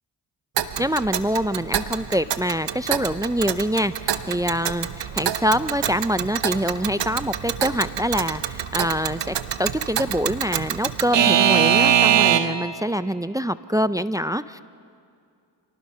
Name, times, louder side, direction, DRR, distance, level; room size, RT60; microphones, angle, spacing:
Alarm / Clock, 0.6-12.7, right 9 dB, 70° right, 1.1 m, -24 dB
voice 1, 0.8-14.6, equal, 10° right, 14 dB, 0.5 m, -25 dB
27.5 x 19.0 x 5.6 m, 2.4 s
cardioid pair, 55°, 45 cm